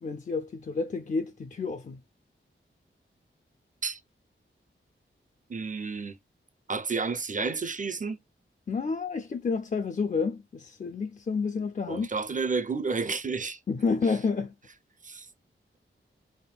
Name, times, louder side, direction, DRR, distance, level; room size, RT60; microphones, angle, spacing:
voice 1, 0.0-2.0 8.7-12.1 13.7-14.5, left 4 dB, 35° left, 0.4 m, -30 dB
voice 2, 5.5-6.2 6.7-8.2 11.9-13.6 15.0-15.3, right 4 dB, 40° right, 0.5 m, -31 dB
3.5 x 2.1 x 2.3 m
wide cardioid pair, 60°, 21 cm